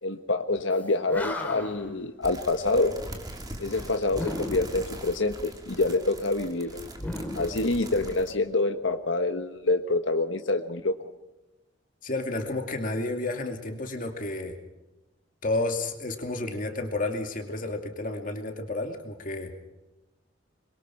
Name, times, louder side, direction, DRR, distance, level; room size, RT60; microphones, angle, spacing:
voice 1, 0.0-2.9 3.6-6.8 7.3-10.9, left 2 dB, 85° left, 6 dB, 1.4 m, -26 dB
Animal, 0.8-0.9 1.1-1.9 4.1-4.9 6.9-8.3, left 1 dB, 10° left, 3.2 m, -35 dB
sound 1, 2.2-8.3, right 1 dB, 20° right, 2.9 m, -42 dB
voice 2, 12.0-14.6 15.4-19.5, left 2 dB, 45° left, 4 dB, 2.5 m, -31 dB
25.5 x 22.5 x 4.6 m, 1.0 s
head